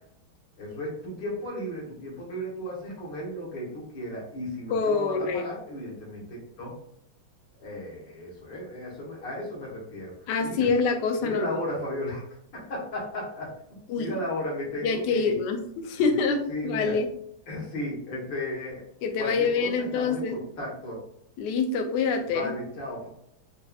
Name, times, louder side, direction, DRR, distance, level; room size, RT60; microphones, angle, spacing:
voice 1, 0.6-6.7 7.6-10.7 11.2-13.5 14.0-15.3 15.9-16.2 16.5-17.0 17.5-18.8 19.2-21.0 22.2-23.1, left 1 dB, 60° left, -5 dB, 2.1 m, -35 dB
voice 2, 4.7-5.4 10.3-11.6 13.9-14.1 14.8-17.1 19.0-20.3 21.4-22.5, left 4 dB, 80° left, 4 dB, 0.9 m, -26 dB
5.5 x 2.7 x 2.3 m, 0.71 s
omnidirectional pair, 2.4 m